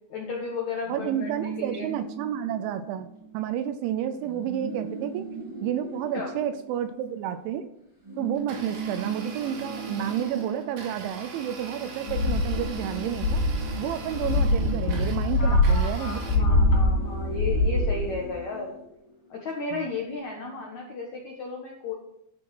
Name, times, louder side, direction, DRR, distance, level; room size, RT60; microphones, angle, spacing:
voice 1, 0.1-1.9 4.1-4.2 6.1-6.3 15.4-18.7 19.3-21.9, left 4 dB, 90° left, -1 dB, 1.6 m, -34 dB
sound 1, 0.8-3.4 3.7-3.8 4.1-7.5 8.0-11.6 11.8-19.5, right 4 dB, 10° right, 1.5 m, -39 dB
voice 2, 0.9-3.1 3.3-5.3 5.6-7.7 8.2-13.4 13.8-16.5 19.7-19.9, right 10 dB, 80° right, 10 dB, 2.8 m, -30 dB
Domestic sounds home sounds, 8.3-16.3, right 4 dB, 55° right, 3.5 m, -42 dB
sound 2, 12.1-18.2, left 2 dB, 55° left, 4.5 m, -24 dB
12.5 x 6.2 x 6.0 m, 0.76 s
omnidirectional pair, 5.8 m